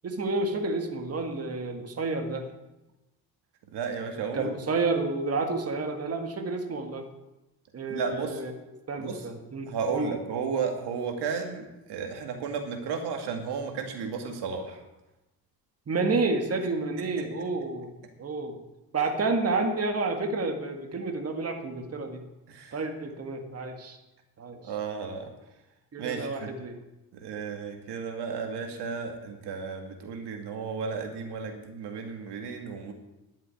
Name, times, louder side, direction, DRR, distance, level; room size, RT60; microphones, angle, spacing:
voice 1, 0.0-2.5 4.3-7.1 7.7-8.5 8.9-10.1 15.9-17.9 18.2-18.6 18.9-22.2 22.7-24.0 24.4-24.7 25.9-26.8, right 3 dB, 40° right, 5 dB, 1.8 m, -30 dB
voice 2, 3.7-4.5 7.9-8.4 9.0-9.2 9.7-14.8 17.2-17.3 22.5-22.8 24.5-25.3 26.0-26.5 27.2-32.9, right 5 dB, 85° right, 5 dB, 2.2 m, -33 dB
11.0 x 7.5 x 9.7 m, 0.99 s
cardioid pair, 115°, 39 cm